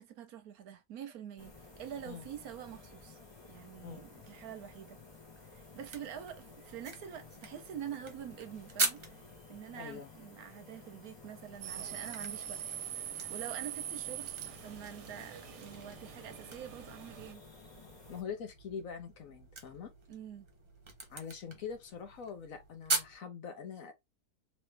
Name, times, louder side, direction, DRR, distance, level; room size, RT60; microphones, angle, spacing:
voice 1, 0.0-3.2 3.5-5.0 5.4-9.2 9.5-12.6 13.3-14.3 14.6-17.4 20.1-20.5, right 9 dB, 70° right, 1.1 m, -46 dB
sound 1, 1.4-18.2, left 4 dB, 25° left, 0.6 m, -54 dB
sound 2, 5.8-9.4 11.4-23.2, right 3 dB, 35° right, 0.4 m, -42 dB
voice 2, 9.8-10.1 18.1-19.9 21.1-23.9, left 7 dB, 60° left, 1.0 m, -43 dB
sound 3, 11.6-17.3, right 11 dB, 90° right, 1.2 m, -43 dB
3.0 x 3.0 x 3.2 m
omnidirectional pair, 1.8 m